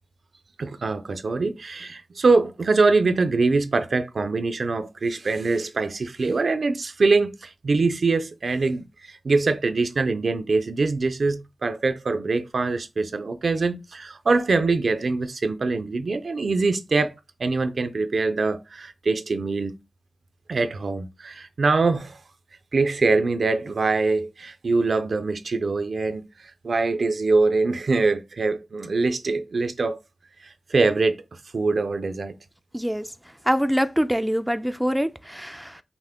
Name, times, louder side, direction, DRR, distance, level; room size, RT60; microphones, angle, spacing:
voice 1, 0.6-19.7 20.5-22.2 22.7-26.2 26.6-30.0 30.4-31.2 31.5-32.4, right 3 dB, 65° right, 0.5 m, -23 dB
voice 2, 32.7-33.1 33.5-35.8, equal, 5° right, 0.3 m, -24 dB
5.8 x 2.1 x 3.6 m
cardioid pair, 60°, 0 cm